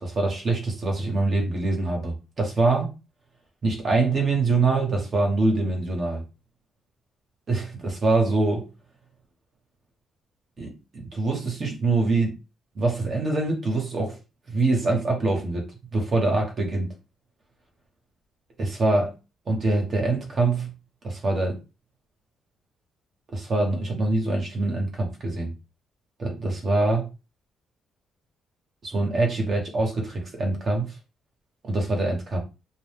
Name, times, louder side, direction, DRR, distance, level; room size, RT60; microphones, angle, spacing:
voice 1, 0.0-2.9 3.6-6.2 7.5-8.7 10.6-12.4 12.7-14.2 14.5-15.7 15.9-16.9 18.6-19.1 19.5-20.7 21.0-21.6 23.3-25.5 26.2-27.1 28.8-30.9 31.6-32.4, right 3 dB, 45° right, 1 dB, 1.0 m, -24 dB
2.4 x 2.2 x 3.4 m, 0.28 s
cardioid pair, 90°, 0 cm